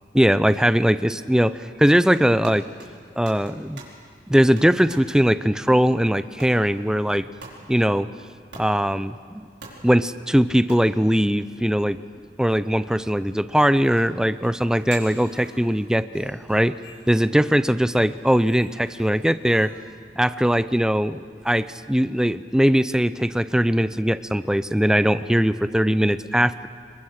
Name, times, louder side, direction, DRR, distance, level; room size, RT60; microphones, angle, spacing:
voice 1, 0.1-2.7 3.2-3.8 4.3-7.3 7.7-8.1 8.5-9.5 9.8-12.0 12.4-16.7 17.1-19.7 20.2-26.7, equal, 5° right, 13 dB, 0.5 m, -20 dB
sound 1, 1.9-4.1 4.6-5.2 6.1-6.9 7.4-7.8 8.5-9.0 9.6-10.1 10.7-11.1 12.2-12.3 12.7-12.9 13.5-14.0 14.7-15.0, right 4 dB, 90° right, 5.0 m, -44 dB
sound 2, 13.7-19.7, left 2 dB, 80° left, 4.5 m, -50 dB
27.5 x 22.5 x 6.5 m, 2.1 s
head